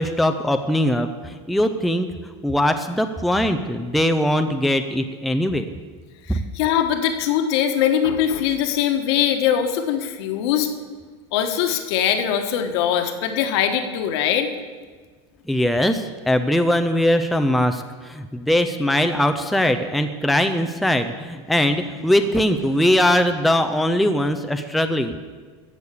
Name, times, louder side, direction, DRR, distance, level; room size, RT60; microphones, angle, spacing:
voice 1, 0.0-5.6 6.3-6.4 15.5-25.1, left 1 dB, ahead, 7 dB, 0.4 m, -21 dB
voice 2, 6.3-10.7 11.3-14.5, left 9 dB, 65° left, 6 dB, 1.4 m, -21 dB
14.5 x 6.5 x 8.3 m, 1.5 s
supercardioid pair, 155°, 15 cm